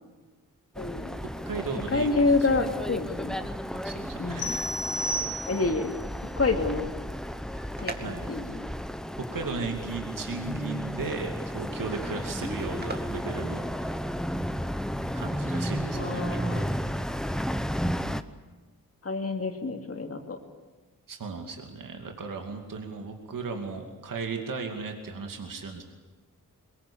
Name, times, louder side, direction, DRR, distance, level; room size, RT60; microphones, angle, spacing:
sound 1, 0.7-18.2, equal, ahead, 0.9 m, -33 dB
voice 1, 0.8-1.2 1.9-3.4 4.2-4.6 5.5-6.0 6.4-6.9 7.8-8.7 15.9-16.8 19.0-20.4, left 3 dB, 40° left, 3 dB, 2.8 m, -28 dB
voice 2, 1.4-2.7 3.7-4.7 8.0-8.2 9.1-13.9 15.1-16.7 21.1-25.8, right 4 dB, 65° right, 3 dB, 2.5 m, -36 dB
sound 2, 4.4-5.9, equal, 90° left, 4.1 m, -32 dB
sound 3, 7.4-14.3, right 3 dB, 30° right, 2.2 m, -44 dB
23.0 x 21.5 x 8.7 m, 1.2 s
wide cardioid pair, 115°, 35 cm